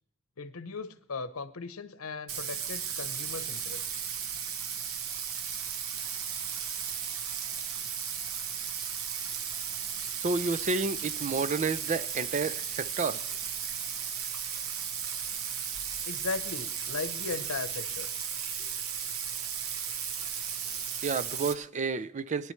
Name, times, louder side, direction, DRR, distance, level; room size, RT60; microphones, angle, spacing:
voice 1, 0.4-3.9 16.1-18.1, left 4 dB, 80° left, 0.9 m, -37 dB
Bathtub (filling or washing), 2.3-21.5, right 7 dB, 85° right, 0.9 m, -35 dB
voice 2, 10.2-13.2 21.0-22.5, right 4 dB, 35° right, 0.4 m, -30 dB
21.0 x 10.5 x 3.2 m
head